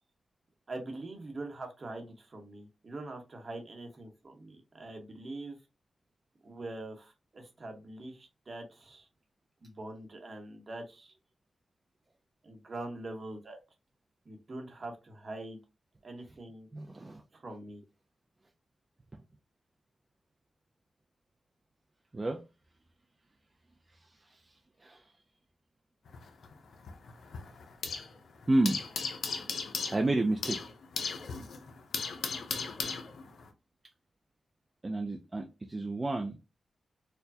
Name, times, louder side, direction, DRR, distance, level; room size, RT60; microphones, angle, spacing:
voice 1, 0.7-5.6 6.4-9.1 9.6-11.1 12.4-13.6 14.2-15.6 16.0-16.7 17.3-17.8, right 2 dB, 45° right, 4 dB, 1.1 m, -43 dB
voice 2, 16.7-17.2 22.1-22.4 24.8-25.0 28.5-28.8 29.9-30.6 34.8-36.4, right 2 dB, 25° right, 2 dB, 0.5 m, -30 dB
sound 1, 26.1-28.2 28.4-33.5, left 5 dB, 80° left, 0.6 m, -37 dB
4.4 x 2.2 x 2.7 m, 0.27 s
wide cardioid pair, 95°, 0 cm